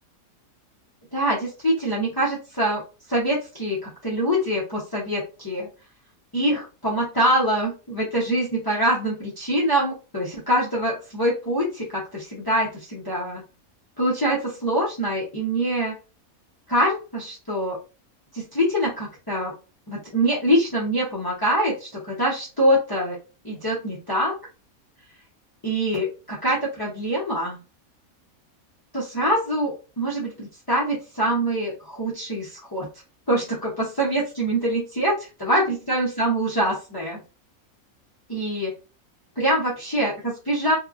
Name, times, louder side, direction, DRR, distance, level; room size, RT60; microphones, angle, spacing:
voice 1, 1.1-2.8 3.1-5.7 6.3-13.4 14.0-15.9 16.7-17.8 18.3-19.5 19.9-23.2 23.4-24.4 25.6-27.6 28.9-32.9 33.3-37.2 38.3-38.7 39.4-40.7, right 1 dB, 20° left, -6 dB, 0.6 m, -24 dB
2.7 x 2.3 x 2.4 m, 0.32 s
omnidirectional pair, 1.5 m